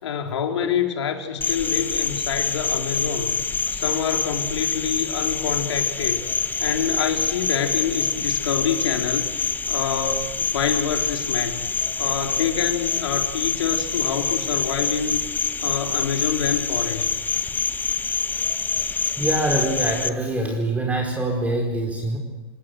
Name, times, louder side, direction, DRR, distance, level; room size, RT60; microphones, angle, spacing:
voice 1, 0.0-3.3 3.7-6.2 6.6-9.3 9.7-11.7 12.0-15.2 15.6-17.1, left 7 dB, 80° left, 4 dB, 3.9 m, -26 dB
Cricket, 1.4-20.1, left 5 dB, 10° left, 1.2 m, -26 dB
voice 2, 19.2-22.2, right 2 dB, 10° right, 1 dB, 4.8 m, -24 dB
29.0 x 19.0 x 8.0 m, 1.2 s
hypercardioid pair, 115°, 14 cm